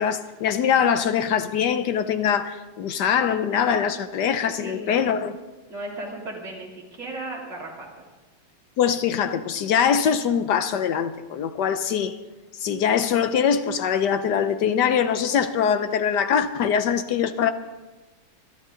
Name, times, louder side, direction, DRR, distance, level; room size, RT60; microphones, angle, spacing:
voice 1, 0.0-5.3 8.8-12.2 12.6-17.5, left 7 dB, 65° left, 1.1 m, -23 dB
voice 2, 4.6-5.2 5.7-8.1, right 2 dB, 85° right, 4.3 m, -36 dB
26.5 x 11.0 x 3.8 m
omnidirectional pair, 2.2 m